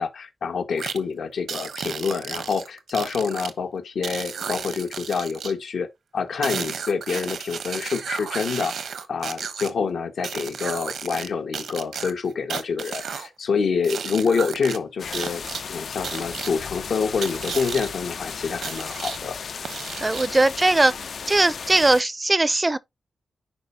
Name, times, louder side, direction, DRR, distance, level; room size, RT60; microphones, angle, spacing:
voice 1, 0.0-5.9 6.1-19.4, left 5 dB, 80° left, 1.5 m, -27 dB
sound 1, 0.8-1.0 1.5-3.5 4.0-5.5 6.4-9.7 10.2-11.3 11.5-13.3 13.8-14.8 15.1-15.6 16.0-16.5 17.2-17.9 18.6-19.2 19.6-20.4, right 6 dB, 90° right, 1.0 m, -33 dB
sound 2, 15.0-22.0, left 6 dB, 65° left, 0.4 m, -35 dB
voice 2, 20.0-20.9 21.3-22.8, right 2 dB, 20° right, 0.4 m, -19 dB
10.5 x 4.7 x 2.8 m
wide cardioid pair, 130°, 0 cm